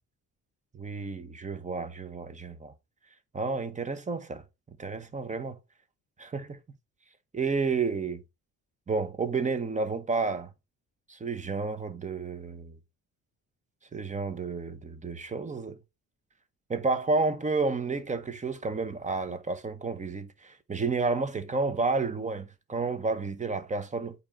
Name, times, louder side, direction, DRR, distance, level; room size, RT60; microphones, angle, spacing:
voice 1, 0.7-2.7 3.3-4.4 4.8-5.5 6.2-6.6 7.3-8.2 8.9-10.5 11.1-12.8 13.9-15.8 16.7-24.1, right 4 dB, 20° right, 0.8 m, -31 dB
8.7 x 3.0 x 3.5 m
cardioid pair, 120°, 33 cm